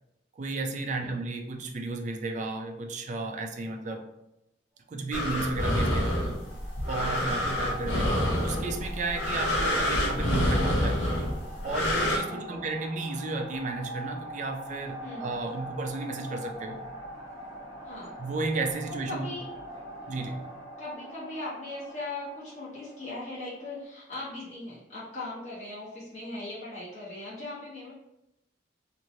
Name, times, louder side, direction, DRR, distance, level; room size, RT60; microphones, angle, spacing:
voice 1, 0.4-4.1 4.9-6.2 6.9-11.0 11.6-16.8 18.2-19.3 20.1-20.4, right 3 dB, 40° right, 4 dB, 0.4 m, -33 dB
sound 1, 5.1-12.2, left 1 dB, 80° left, 0.7 m, -27 dB
sound 2, 6.1-23.8, right 1 dB, 20° right, 0.9 m, -43 dB
voice 2, 12.3-12.6 15.0-15.3 17.8-18.1 18.9-19.4 20.8-27.9, left 2 dB, 40° left, -10 dB, 1.2 m, -39 dB
3.0 x 2.5 x 2.6 m, 0.88 s
head